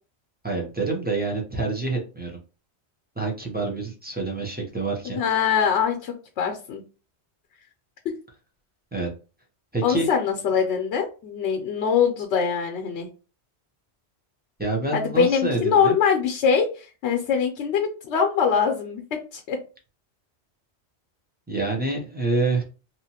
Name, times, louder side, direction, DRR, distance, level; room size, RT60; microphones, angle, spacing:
voice 1, 0.4-2.4 3.2-5.2 8.9-9.1 9.7-10.1 14.6-16.0 21.5-22.6, right 3 dB, 10° right, 0 dB, 0.5 m, -27 dB
voice 2, 5.0-6.8 9.8-13.1 14.9-19.0 19.3-19.6, left 6 dB, 85° left, 3 dB, 0.9 m, -23 dB
2.8 x 2.4 x 2.8 m, 0.34 s
omnidirectional pair, 1.1 m